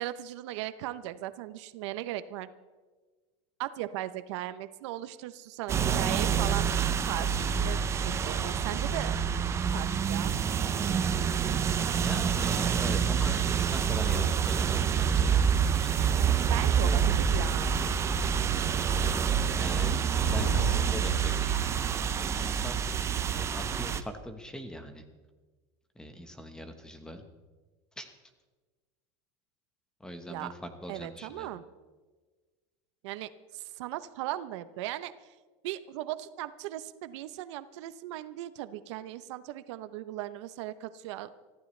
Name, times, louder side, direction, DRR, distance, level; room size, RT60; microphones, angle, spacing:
voice 1, 0.0-2.5 3.6-9.2 9.7-10.3 16.5-17.9 30.3-30.5 30.9-31.6 33.0-35.3 35.6-41.4, right 14 dB, 70° right, 13 dB, 0.8 m, -38 dB
sound 1, 5.7-24.0, right 7 dB, 15° right, 0.6 m, -27 dB
voice 2, 11.9-17.0 19.1-20.0 20.2-22.9 23.3-25.0 25.9-27.2 28.0-28.1 30.0-31.5, equal, 5° left, 7 dB, 1.2 m, -41 dB
Thunder, 20.0-22.2, left 9 dB, 60° left, 0.9 m, -41 dB
25.0 x 14.5 x 3.3 m, 1.3 s
supercardioid pair, 160°, 16 cm